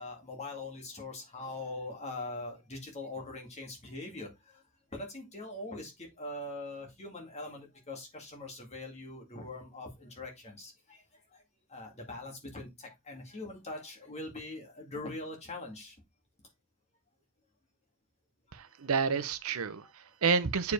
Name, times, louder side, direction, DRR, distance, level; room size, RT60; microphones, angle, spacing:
voice 1, 0.0-4.6 4.9-11.4 11.7-16.0 19.8-19.9, left 2 dB, 30° left, 2.2 m, -42 dB
voice 2, 18.5-20.7, right 5 dB, 75° right, 0.7 m, -30 dB
8.1 x 4.9 x 3.3 m
head